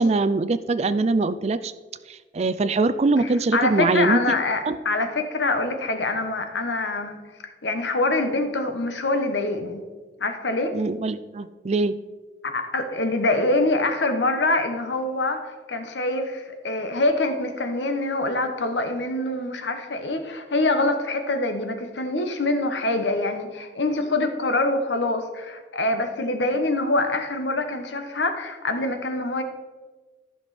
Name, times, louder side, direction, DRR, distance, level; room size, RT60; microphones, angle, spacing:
voice 1, 0.0-1.7 2.1-4.4 4.7-4.8 10.7-12.0, right 3 dB, 35° right, 14 dB, 0.4 m, -22 dB
voice 2, 3.2-7.2 7.6-9.8 10.2-10.7 12.5-29.4, left 2 dB, 75° left, 7 dB, 1.1 m, -25 dB
14.0 x 6.2 x 4.2 m, 1.4 s
head